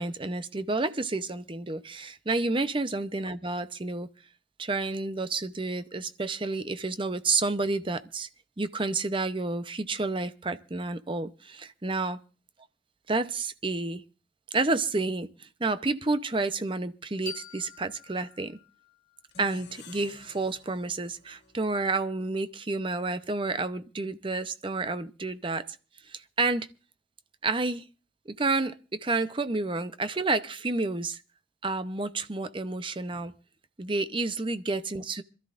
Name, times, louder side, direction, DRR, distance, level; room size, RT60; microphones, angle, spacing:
voice 1, 0.0-4.1 4.6-8.3 8.6-12.2 13.1-14.0 14.5-18.6 19.4-25.6 26.1-26.7 27.4-27.8 28.3-31.2 31.6-33.3 33.8-35.2, right 3 dB, 25° right, 0.7 m, -30 dB
sound 1, 17.3-20.1, left 8 dB, 35° left, 1.0 m, -47 dB
sound 2, 19.3-22.5, left 4 dB, 65° left, 1.7 m, -52 dB
26.5 x 13.5 x 2.5 m
head